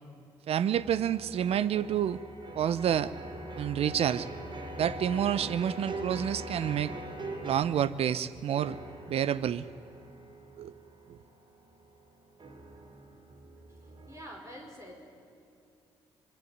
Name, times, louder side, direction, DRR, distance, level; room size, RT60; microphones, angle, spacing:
voice 1, 0.5-2.2 2.5-3.1 3.6-4.3 4.8-6.9 7.4-8.8 9.1-9.7 10.6-10.7 11.1-11.2, right 9 dB, 70° right, 17 dB, 0.8 m, -28 dB
sound 1, 0.7-8.0 8.6-14.3, right 1 dB, 50° right, 3.7 m, -43 dB
voice 2, 14.1-15.0, equal, 30° right, 1 dB, 5.6 m, -46 dB
25.5 x 21.0 x 9.6 m, 2.6 s
supercardioid pair, 55°, 11 cm